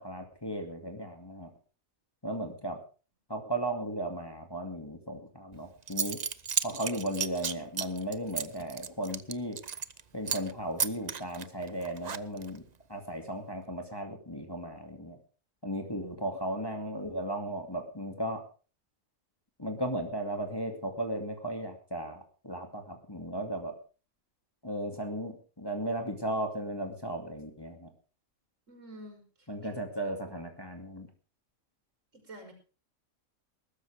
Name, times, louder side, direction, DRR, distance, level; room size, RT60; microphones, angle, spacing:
voice 1, 0.0-1.5 2.2-2.8 3.3-6.2 6.6-9.6 10.1-12.6 12.9-15.2 15.6-18.4 19.6-23.7 24.6-27.9 29.5-31.1, right 1 dB, 15° left, 4 dB, 2.4 m, -36 dB
Zipper (clothing) / Coin (dropping), 5.5-5.6 5.9-10.0 10.3-10.5 10.8-12.6, right 6 dB, 40° right, 0.7 m, -34 dB
voice 2, 28.7-29.5 32.1-32.5, right 1 dB, 60° right, 5 dB, 5.6 m, -48 dB
20.0 x 13.0 x 3.5 m, 0.37 s
omnidirectional pair, 1.5 m